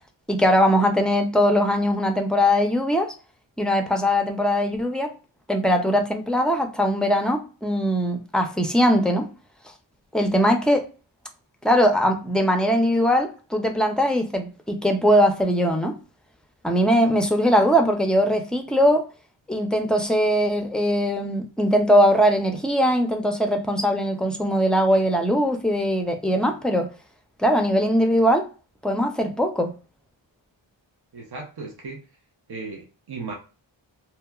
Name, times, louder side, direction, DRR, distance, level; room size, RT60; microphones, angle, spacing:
voice 1, 0.3-3.1 3.6-5.1 5.5-9.3 10.1-10.9 11.6-16.0 16.6-19.1 19.5-26.9 27.4-28.5 28.8-29.7, equal, ahead, 0.4 m, -21 dB
voice 2, 31.1-32.0 32.5-33.3, right 4 dB, 55° right, 0.8 m, -36 dB
2.8 x 2.2 x 2.3 m
wide cardioid pair, 80°, 47 cm